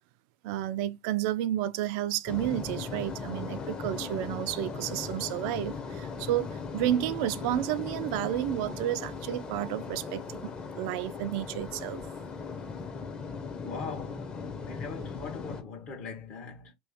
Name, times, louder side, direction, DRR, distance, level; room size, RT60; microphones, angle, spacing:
voice 1, 0.4-12.0, right 13 dB, 55° right, 0.4 m, -31 dB
sound 1, 2.3-15.6, left 5 dB, 25° left, 0.9 m, -38 dB
voice 2, 13.5-14.3 14.7-16.7, left 5 dB, 45° left, 1.1 m, -40 dB
3.0 x 2.7 x 3.7 m
figure-of-eight pair, 80°, 4 cm